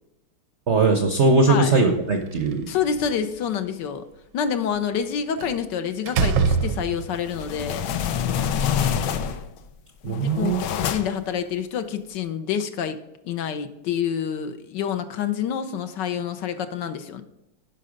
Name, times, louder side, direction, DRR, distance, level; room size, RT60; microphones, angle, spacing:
voice 1, 0.7-2.7 10.0-10.6, right 3 dB, 55° right, 5 dB, 0.7 m, -20 dB
Slam, 2.2-3.3 5.4-5.6 6.1-7.3, right 5 dB, 80° right, 1.6 m, -24 dB
voice 2, 2.7-4.0 4.3-7.9 10.0-17.2, left 8 dB, 70° left, 9 dB, 1.3 m, -28 dB
sound 1, 7.1-9.6 10.1-11.3, left 8 dB, 85° left, 1.5 m, -26 dB
11.0 x 5.4 x 5.1 m, 0.91 s
omnidirectional pair, 2.1 m